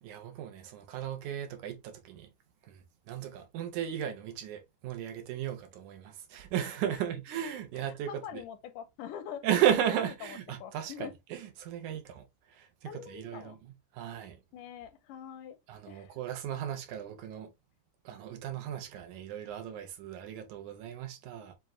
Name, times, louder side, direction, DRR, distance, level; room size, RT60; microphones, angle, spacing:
voice 1, 0.0-2.3 2.7-8.4 9.4-14.4 15.7-17.5 18.1-21.5, right 10 dB, 75° right, 2.1 m, -35 dB
voice 2, 8.1-9.5 10.3-11.1 12.9-13.6 14.5-15.6 15.9-16.1, left 9 dB, 85° left, 2.2 m, -44 dB
7.1 x 2.4 x 3.0 m
omnidirectional pair, 3.7 m